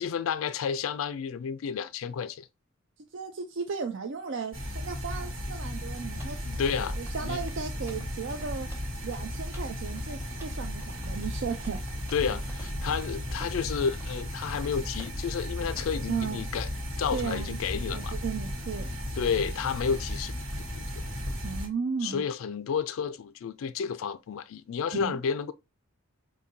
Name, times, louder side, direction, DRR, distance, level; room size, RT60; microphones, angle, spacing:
voice 1, 0.0-2.5 6.4-7.4 12.1-16.7 17.0-18.2 19.2-20.3 20.7-20.8 22.0-25.5, left 6 dB, 70° left, 0.3 m, -31 dB
voice 2, 3.1-6.4 7.0-8.7 9.0-11.8 12.3-12.4 16.1-16.5 17.1-17.6 17.9-18.9 21.4-22.2 25.0-25.2, right 5 dB, 60° right, 0.5 m, -35 dB
sound 1, 4.5-21.7, left 1 dB, 75° right, 1.7 m, -35 dB
Run, 6.1-14.2 14.4-14.7 15.0-15.4 15.8-15.9, equal, 10° right, 1.1 m, -52 dB
5.1 x 2.7 x 2.7 m
head